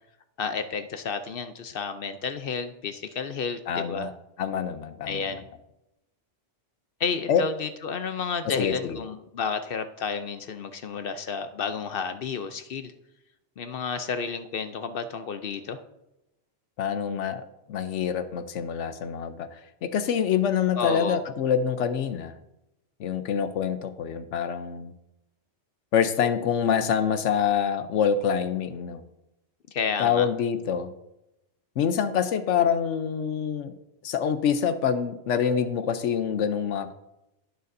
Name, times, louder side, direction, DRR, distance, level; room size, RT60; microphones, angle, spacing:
voice 1, 0.4-4.1 5.1-5.4 7.0-12.9 13.6-15.8 20.8-21.2 29.7-30.3, left 5 dB, 60° left, 9 dB, 0.7 m, -31 dB
voice 2, 3.7-4.1 4.4-5.2 7.3-7.4 8.6-9.0 16.8-19.5 19.8-22.3 23.0-24.9 25.9-29.0 30.0-30.9 31.8-33.7 34.0-36.9, left 7 dB, 80° left, 10 dB, 1.0 m, -26 dB
18.0 x 6.7 x 2.6 m, 0.90 s
omnidirectional pair, 1.2 m